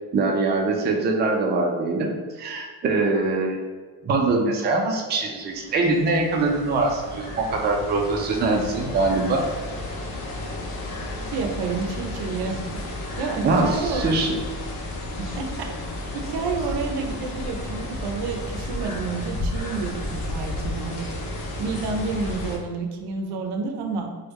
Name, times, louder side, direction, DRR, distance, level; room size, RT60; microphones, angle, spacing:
voice 1, 0.1-2.1 2.4-3.6 4.0-9.4 13.4-14.3, right 3 dB, 25° right, 0 dB, 0.4 m, -23 dB
sound 1, 5.5-22.6, left 1 dB, 60° left, 0.7 m, -32 dB
voice 2, 11.3-12.9 13.2-14.1 15.2-15.7 16.1-21.3 21.6-24.1, right 4 dB, 70° right, 3 dB, 0.6 m, -29 dB
3.3 x 2.2 x 3.1 m, 1.5 s
cardioid pair, 135°, 40 cm